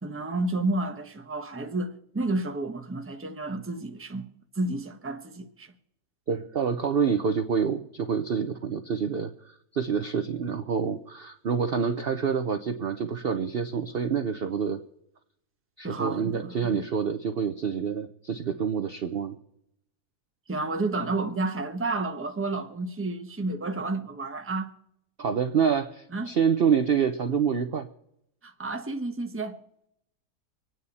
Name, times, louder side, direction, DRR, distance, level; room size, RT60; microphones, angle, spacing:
voice 1, 0.0-4.3 4.5-5.7 15.8-16.8 20.5-24.7 26.1-26.3 28.4-29.6, right 2 dB, 10° right, 0.9 m, -31 dB
voice 2, 6.3-14.8 15.8-19.4 25.2-27.9, right 6 dB, 50° right, 0.8 m, -27 dB
25.5 x 9.3 x 4.2 m
omnidirectional pair, 1.7 m